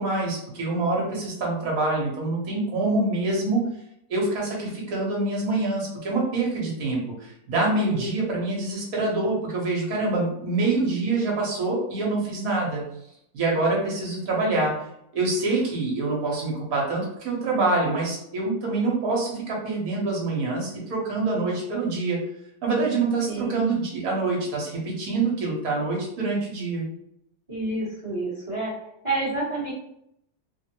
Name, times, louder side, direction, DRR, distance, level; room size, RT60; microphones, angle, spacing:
voice 1, 0.0-3.6 4.1-12.8 13.3-14.9 15.1-22.2 22.6-26.8, right 3 dB, 55° right, -2 dB, 1.3 m, -25 dB
voice 2, 7.9-8.2 23.3-23.6 27.5-28.7 29.0-29.7, right 2 dB, 20° right, -8 dB, 1.0 m, -29 dB
3.5 x 2.0 x 2.9 m, 0.75 s
omnidirectional pair, 1.9 m